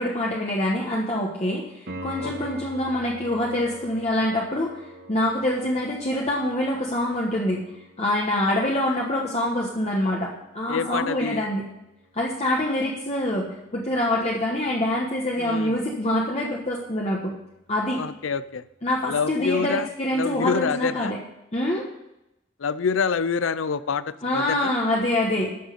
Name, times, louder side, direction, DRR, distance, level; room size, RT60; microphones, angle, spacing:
voice 1, 0.0-1.6 2.0-4.8 5.1-7.6 8.0-11.6 12.1-17.3 17.7-18.0 18.8-21.2 21.5-21.9 24.2-25.5, left 1 dB, 35° left, -2 dB, 1.3 m, -25 dB
Piano, 1.9-12.5 15.8-15.9, right 1 dB, 55° right, 1.4 m, -44 dB
voice 2, 10.7-11.5 15.4-15.7 18.0-18.6 19.1-21.1 22.6-24.7, left 5 dB, 75° left, 16 dB, 0.5 m, -27 dB
12.5 x 6.4 x 6.7 m, 0.87 s
head